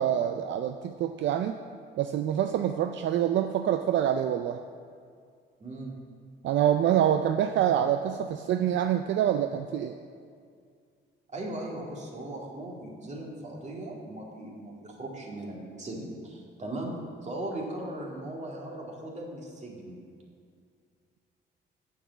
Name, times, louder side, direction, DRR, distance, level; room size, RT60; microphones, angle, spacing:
voice 1, 0.0-1.6 2.0-4.6 6.4-10.0, right 10 dB, 70° right, 7 dB, 0.4 m, -26 dB
voice 2, 5.6-6.0 11.3-16.9 17.2-20.0, right 1 dB, 35° right, -2 dB, 2.2 m, -38 dB
7.3 x 7.0 x 7.0 m, 2.2 s
cardioid pair, 90°, 20 cm